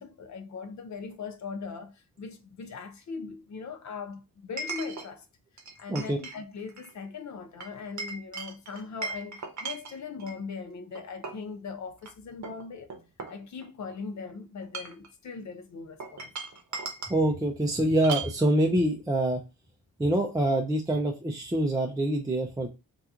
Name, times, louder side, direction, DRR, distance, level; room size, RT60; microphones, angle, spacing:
voice 1, 0.0-5.3 5.8-12.9 13.3-16.3, left 5 dB, 50° left, 0.6 m, -40 dB
Chink clink, 1.1-1.2 4.6-5.1 5.6-6.4 6.7-6.9 7.6-10.4 11.0-11.5 12.0-12.1 12.4-13.9 14.6-15.1 16.0-17.2 18.0-18.4, right 4 dB, 50° right, 0.8 m, -38 dB
voice 2, 17.1-19.4 20.0-22.7, right 1 dB, 10° right, 0.4 m, -25 dB
2.9 x 2.4 x 3.5 m
wide cardioid pair, 125°, 37 cm